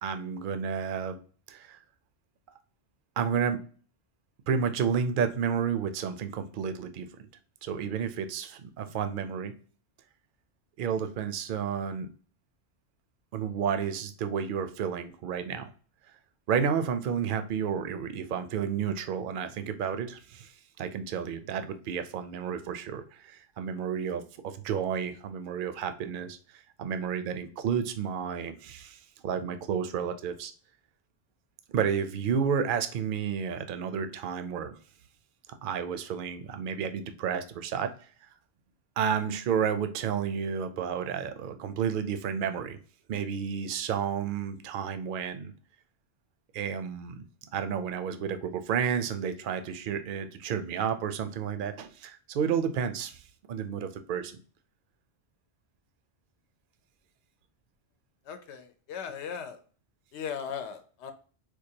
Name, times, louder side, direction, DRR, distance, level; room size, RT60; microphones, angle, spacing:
voice 1, 0.0-1.2 1.5-1.8 3.2-3.6 4.5-7.1 7.6-9.5 10.8-12.1 13.3-15.7 16.5-30.5 31.7-34.7 35.6-37.9 39.0-42.8 43.1-45.5 46.5-47.2 47.5-53.2 53.5-54.4, right 7 dB, 60° right, 9 dB, 0.6 m, -31 dB
voice 2, 58.3-59.6 60.1-61.1, left 7 dB, 75° left, 8 dB, 0.9 m, -38 dB
4.5 x 2.3 x 2.7 m, 0.41 s
omnidirectional pair, 1.2 m